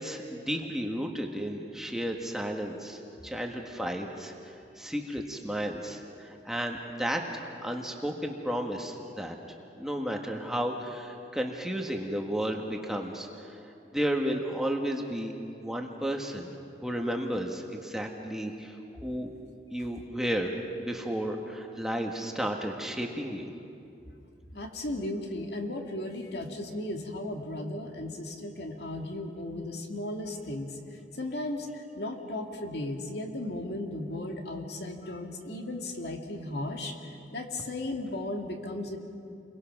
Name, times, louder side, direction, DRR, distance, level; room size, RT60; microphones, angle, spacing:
voice 1, 0.0-9.3 9.7-13.6 13.9-15.3 15.6-16.5 16.8-18.8 19.0-19.3 19.7-23.5, equal, 5° right, 1 dB, 1.5 m, -33 dB
voice 2, 24.5-30.8 31.2-31.7 32.0-37.0 37.3-39.0, left 1 dB, 65° left, 3 dB, 2.2 m, -35 dB
29.5 x 22.5 x 6.1 m, 2.6 s
head